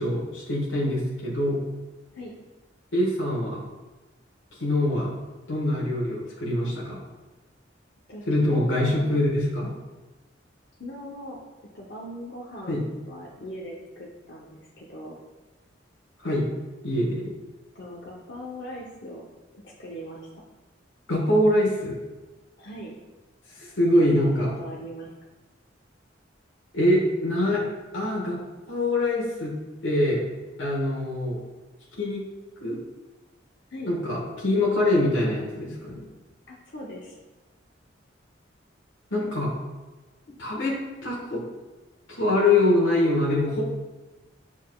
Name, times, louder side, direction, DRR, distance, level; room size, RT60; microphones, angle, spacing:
voice 1, 0.0-1.6 2.9-3.6 4.6-5.1 5.5-7.0 8.3-9.7 12.7-12.8 16.2-16.5 16.8-17.2 21.1-22.0 23.6-24.5 26.7-27.6 27.9-28.4 28.7-29.5 29.8-30.2 30.6-31.4 32.0-32.2 32.6-32.8 33.9-36.1 39.1-39.5 40.4-40.7 41.0-41.4 42.1-43.6, left 1 dB, 90° left, -4 dB, 1.4 m, -24 dB
voice 2, 8.1-9.2 10.8-11.4 11.7-15.2 17.7-19.2 19.5-20.3 22.6-22.9 24.6-25.1 33.7-33.9 36.5-37.1, equal, 60° left, -4 dB, 0.8 m, -40 dB
7.3 x 5.6 x 2.3 m, 1.2 s
head